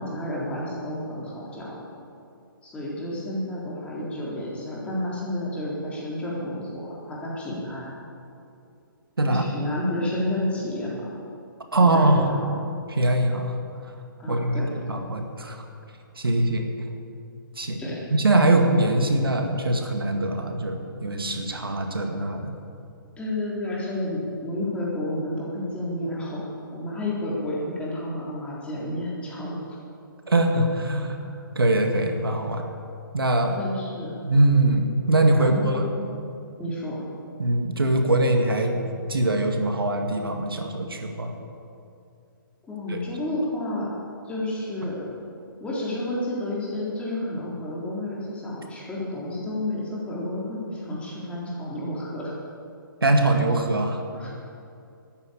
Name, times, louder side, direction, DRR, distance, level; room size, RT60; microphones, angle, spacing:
voice 1, 0.0-1.8 2.6-7.9 9.3-11.1 11.8-12.5 14.2-14.7 17.8-18.0 23.2-29.5 31.2-31.4 33.6-34.2 35.4-35.8 36.6-37.0 42.6-43.9 44.2-45.1 45.6-52.3 54.1-54.5, left 1 dB, 10° left, -6 dB, 3.9 m, -31 dB
voice 2, 11.7-12.3 12.9-13.6 14.3-14.6 14.9-15.6 16.2-16.7 17.6-17.8 18.1-22.5 30.3-31.2 31.6-32.6 33.1-33.6 34.2-35.9 37.4-38.8 39.1-41.3 42.9-43.0 53.0-54.0, right 2 dB, 80° right, 4 dB, 2.1 m, -22 dB
12.5 x 11.0 x 8.5 m, 2.5 s
figure-of-eight pair, 135°, 12 cm